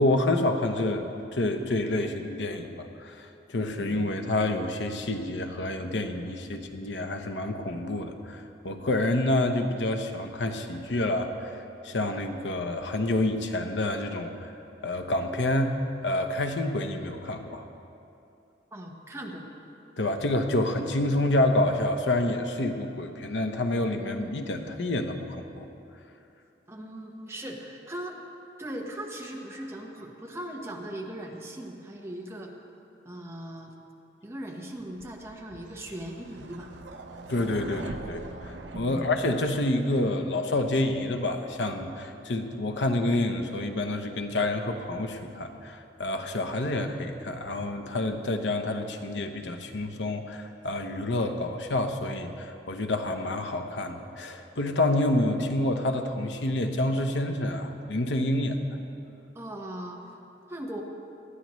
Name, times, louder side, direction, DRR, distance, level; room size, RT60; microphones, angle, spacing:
voice 1, 0.0-11.6 11.8-14.5 14.8-15.7 16.0-17.6 20.0-25.7 37.3-58.6, left 1 dB, 80° left, 5 dB, 0.9 m, -28 dB
voice 2, 18.7-19.5 26.7-28.2 28.6-32.5 33.0-33.7 34.2-36.7 37.7-37.9 38.7-39.1 59.3-60.0 60.5-60.8, right 1 dB, 15° right, 0 dB, 1.2 m, -39 dB
sound 1, 35.0-39.9, right 2 dB, 75° right, 0.8 m, -42 dB
19.5 x 13.0 x 3.2 m, 2.7 s
head